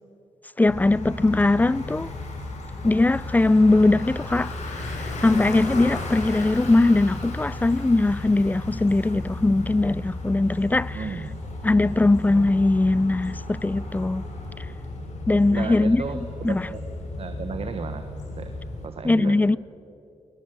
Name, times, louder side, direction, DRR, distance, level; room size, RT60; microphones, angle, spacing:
Bicycle, 0.6-18.9, left 2 dB, 75° left, 5.0 m, -34 dB
voice 1, 0.6-2.1 2.8-4.5 5.2-11.0 11.6-14.2 15.3-16.0 16.4-16.6 19.0-19.6, left 2 dB, 15° left, 0.4 m, -20 dB
voice 2, 10.9-11.4 12.3-12.5 15.5-16.8 17.2-18.1 18.4-18.5 18.8-19.5, right 5 dB, 55° right, 1.3 m, -34 dB
22.0 x 21.0 x 7.9 m
cardioid pair, 90°, 12 cm